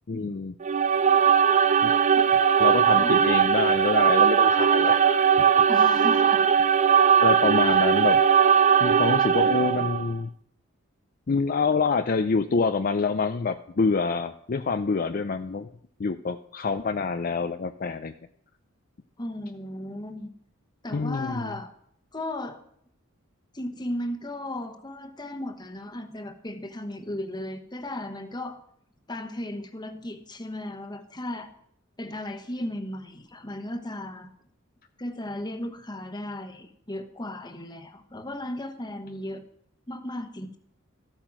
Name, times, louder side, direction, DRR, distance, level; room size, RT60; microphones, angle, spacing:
voice 1, 0.1-0.5 1.1-1.2 1.8-1.9 2.6-5.5 7.2-8.2 8.8-10.3 11.3-15.7 16.0-18.1 20.9-21.5, left 4 dB, 45° left, 9 dB, 0.5 m, -26 dB
sound 1, 0.6-10.1, right 7 dB, 35° right, 0.4 m, -19 dB
voice 2, 2.9-3.2 5.7-6.5 19.2-20.3 20.8-21.7 22.1-22.6 23.5-28.6 29.1-31.5 32.0-34.3 35.0-39.4 39.9-40.6, left 1 dB, 20° left, 7 dB, 1.2 m, -35 dB
14.0 x 8.9 x 6.0 m, 0.69 s
head